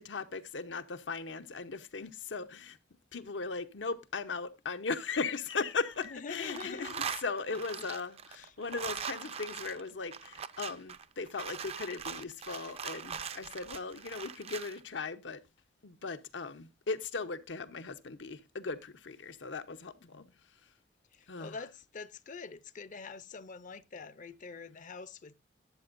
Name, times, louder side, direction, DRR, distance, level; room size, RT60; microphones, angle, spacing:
voice 1, 0.0-2.8 3.1-6.9 7.2-15.4 15.8-20.2 21.3-21.6, left 4 dB, 85° left, 0.8 m, -38 dB
sound 1, 5.3-6.1 6.3-14.8, right 7 dB, 35° right, 0.4 m, -41 dB
voice 2, 6.1-7.0 7.5-7.9 8.3-8.5 20.0-20.3 21.1-25.3, left 4 dB, 45° left, 0.5 m, -45 dB
12.5 x 8.1 x 2.5 m
head